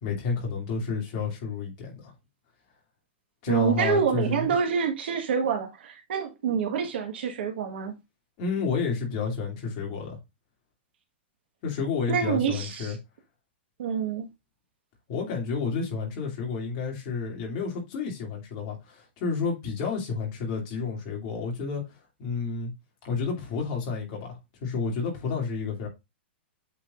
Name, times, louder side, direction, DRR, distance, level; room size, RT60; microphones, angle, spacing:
voice 1, 0.0-2.1 3.4-4.5 8.4-10.2 11.6-13.0 15.1-21.8 22.2-22.7 23.0-25.9, left 5 dB, 30° left, 2.6 m, -30 dB
voice 2, 3.5-7.9 12.1-13.0 13.8-14.3, right 6 dB, 60° right, 1.5 m, -27 dB
8.2 x 4.8 x 2.5 m
supercardioid pair, 175°, 6 cm